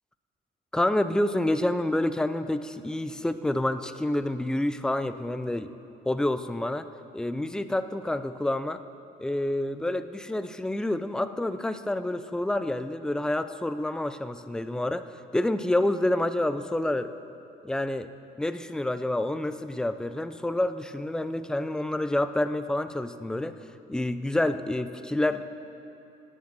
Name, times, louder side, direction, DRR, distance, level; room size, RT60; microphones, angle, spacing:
voice 1, 0.7-5.7 6.1-6.9 7.1-8.8 9.2-15.0 15.3-17.1 17.6-18.1 18.4-23.6 23.9-25.4, left 1 dB, 5° left, 11 dB, 0.4 m, -28 dB
10.0 x 8.6 x 8.8 m, 2.7 s
cardioid pair, 110°, 17 cm